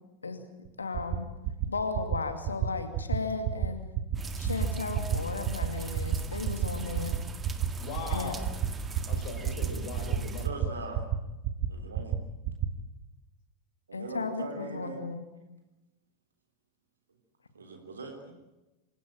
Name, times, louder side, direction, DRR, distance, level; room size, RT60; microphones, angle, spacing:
sound 1, 0.6-0.7 0.9-1.2 1.4-1.7 1.9-2.2 2.4-2.7 2.9-3.2 3.4-3.7 3.9-4.2 4.4-4.7 4.9-5.2 5.4-5.7 5.9-6.2 6.4-6.7 6.9-7.2 7.4-7.7 7.9-8.2 8.4-8.7 8.9-9.2 9.4-9.7 9.9-10.2 10.4-10.7 10.9-11.2 11.4-11.7 11.9-12.2 12.4-12.7, right 12 dB, 40° right, 1.8 m, -29 dB
voice 1, 0.8-1.3 1.7-3.8 4.4-7.2 8.1-8.3 13.9-15.2, left 4 dB, 75° left, 8 dB, 2.5 m, -35 dB
sound 2, 4.2-10.5, right 4 dB, 15° right, 1.8 m, -37 dB
voice 2, 7.8-8.5 9.1-10.7, left 4 dB, 45° left, 4 dB, 6.0 m, -39 dB
voice 3, 10.4-11.0 11.7-12.2 13.9-15.1 17.6-18.3, right 3 dB, 75° right, 3 dB, 3.4 m, -41 dB
26.5 x 16.5 x 9.0 m, 1.0 s
figure-of-eight pair, 90°, 0 cm